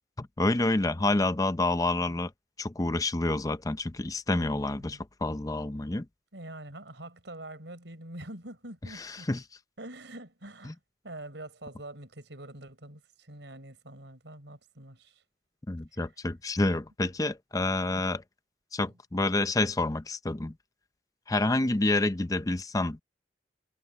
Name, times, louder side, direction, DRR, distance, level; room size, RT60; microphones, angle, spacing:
voice 1, 0.2-2.3 2.6-6.1 9.0-9.4 10.7-10.8 15.7-18.2 18.7-20.5 21.3-23.0, left 2 dB, 20° left, 0.6 m, -28 dB
voice 2, 4.3-5.0 6.3-9.3 9.8-10.8 11.0-15.2 17.7-18.1 18.8-18.9, right 1 dB, 85° right, 4.5 m, -45 dB
head